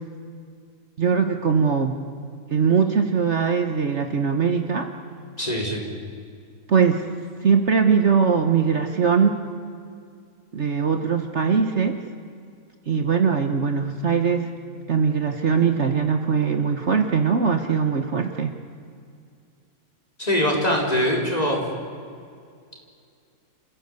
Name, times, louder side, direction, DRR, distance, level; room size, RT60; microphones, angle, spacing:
voice 1, 1.0-1.9 2.5-4.9 6.7-7.0 7.4-9.4 10.5-12.0 12.9-14.5 14.9-18.6, right 6 dB, 50° right, 6 dB, 1.4 m, -21 dB
voice 2, 5.4-5.9 20.2-21.6, equal, 25° left, -1 dB, 4.6 m, -22 dB
28.5 x 16.0 x 8.2 m, 2.3 s
omnidirectional pair, 1.6 m